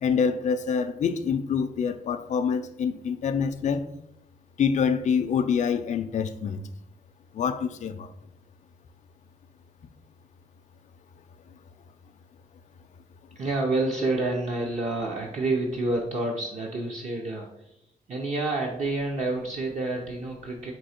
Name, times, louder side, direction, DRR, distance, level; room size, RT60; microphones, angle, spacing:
voice 1, 0.0-3.8 4.6-6.6 7.3-8.1, left 6 dB, 55° left, 0.4 m, -26 dB
voice 2, 13.4-17.7 18.1-20.7, right 2 dB, 50° right, 0.7 m, -28 dB
4.5 x 2.7 x 4.3 m
wide cardioid pair, 110°, 15 cm